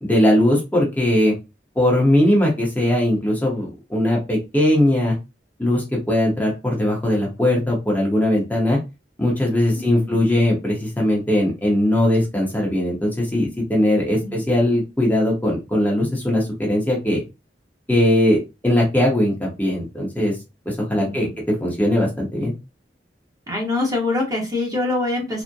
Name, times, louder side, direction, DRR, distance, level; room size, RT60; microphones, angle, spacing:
voice 1, 0.0-1.3 1.8-5.1 5.6-8.8 9.2-17.2 17.9-20.3 20.7-22.5, left 1 dB, 10° left, -2 dB, 0.8 m, -20 dB
voice 2, 9.7-10.2 14.2-14.4 21.0-21.3 23.5-25.4, left 2 dB, 20° right, -1 dB, 1.0 m, -25 dB
3.4 x 2.1 x 2.7 m, 0.26 s
head